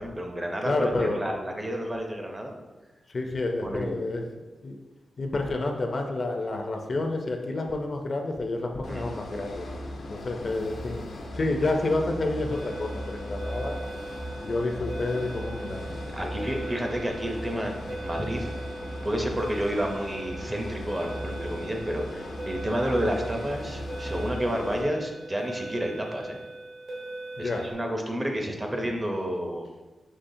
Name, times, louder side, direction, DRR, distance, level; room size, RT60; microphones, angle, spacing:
voice 1, 0.0-2.5 3.6-4.0 8.9-9.1 16.0-18.5 18.9-26.4 27.4-29.7, equal, 20° right, 2 dB, 0.5 m, -30 dB
voice 2, 0.6-1.2 3.1-4.2 4.6-4.8 5.2-9.7 10.1-11.0 11.3-13.8 14.4-15.9 16.2-16.4 27.4-27.7, left 2 dB, 40° left, 3 dB, 0.4 m, -29 dB
sound 1, 8.8-24.8, left 1 dB, 90° left, 0.6 m, -37 dB
sound 2, 12.5-27.7, right 2 dB, 70° right, 1.5 m, -40 dB
5.5 x 3.2 x 2.6 m, 1.2 s
wide cardioid pair, 125°, 0 cm